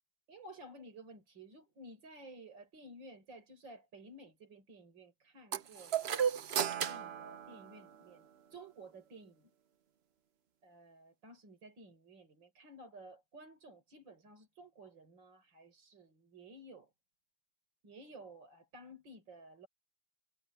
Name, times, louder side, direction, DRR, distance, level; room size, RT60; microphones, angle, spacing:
voice 1, 0.3-6.2 6.8-9.5 10.6-16.9 17.8-19.7, right 1 dB, 65° right, 5.7 m, -54 dB
sound 1, 5.5-8.2, right 8 dB, 90° right, 0.5 m, -35 dB
omnidirectional pair, 2.2 m